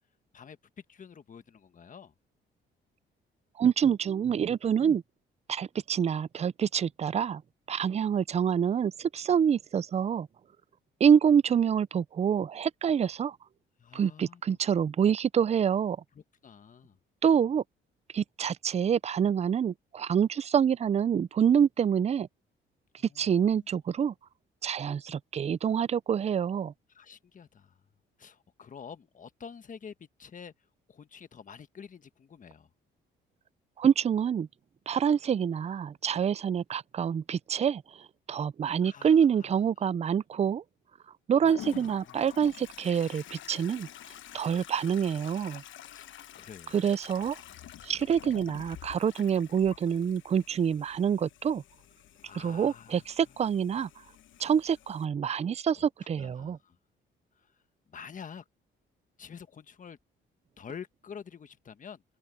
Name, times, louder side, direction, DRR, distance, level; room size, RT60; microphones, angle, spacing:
voice 1, 0.3-2.1 13.8-14.4 16.1-17.0 23.0-23.7 26.9-27.8 28.2-30.5 30.9-32.7 38.8-39.5 41.4-42.2 45.3-46.1 46.3-47.0 52.2-53.0 53.7-53.8 55.7-56.8 57.3-57.6 57.9-58.4 59.2-60.0 60.6-62.0, left 7 dB, 40° left, 1.3 m, -48 dB
voice 2, 3.6-5.0 5.5-7.4 7.7-10.3 11.0-13.4 13.9-16.0 17.2-17.6 18.1-22.3 23.2-24.1 24.6-26.7 33.8-34.5 34.9-40.6 41.3-43.9 44.3-45.6 46.7-47.4 47.8-51.6 52.3-53.9 54.4-56.6, right 8 dB, 35° right, 0.4 m, -26 dB
Toilet flush, 41.5-55.1, left 11 dB, 75° left, 1.2 m, -48 dB
open air
cardioid pair, 90°, 20 cm